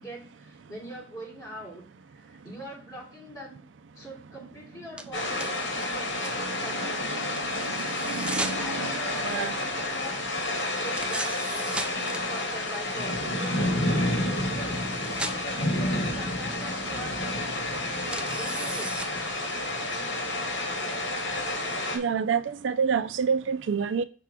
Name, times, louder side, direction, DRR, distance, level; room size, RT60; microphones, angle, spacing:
voice 1, 0.0-1.9 2.1-3.6 3.9-7.1 8.6-10.2 10.8-13.7 14.0-19.0, right 1 dB, 20° left, 3.1 m, -43 dB
sound 1, 5.0-5.1 5.4-5.9 6.2-6.3 7.3-8.6 10.9-12.2 14.4-14.5 14.7-15.4 18.0-19.1, right 2 dB, 5° right, 0.4 m, -35 dB
sound 2, 5.1-22.0, left 1 dB, 75° left, 2.1 m, -30 dB
voice 2, 7.8-8.9 9.2-9.5 21.9-24.0, right 6 dB, 80° right, 0.4 m, -28 dB
5.7 x 3.7 x 5.9 m
head